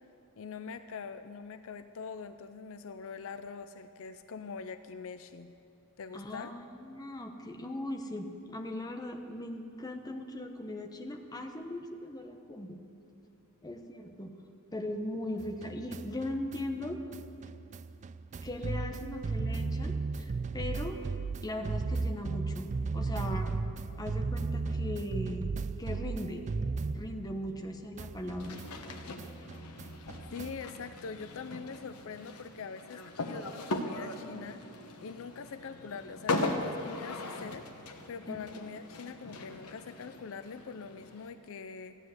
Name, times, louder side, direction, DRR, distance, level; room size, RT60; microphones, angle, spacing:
voice 1, 0.4-5.5 6.0-6.5 30.3-34.6 35.0-37.7 38.1-42.0, left 5 dB, 65° left, 11 dB, 0.5 m, -43 dB
voice 2, 6.1-12.8 13.6-14.3 14.7-17.0 18.4-21.0 21.4-23.6 24.0-25.5 25.8-26.4 26.9-28.6 38.3-38.4, left 1 dB, 15° left, 4 dB, 1.0 m, -39 dB
sound 1, 15.4-27.7 28.0-30.7, right 4 dB, 35° right, 0.3 m, -36 dB
sound 2, 28.4-41.3, left 2 dB, 90° left, 1.2 m, -39 dB
15.0 x 9.9 x 7.9 m, 2.8 s
head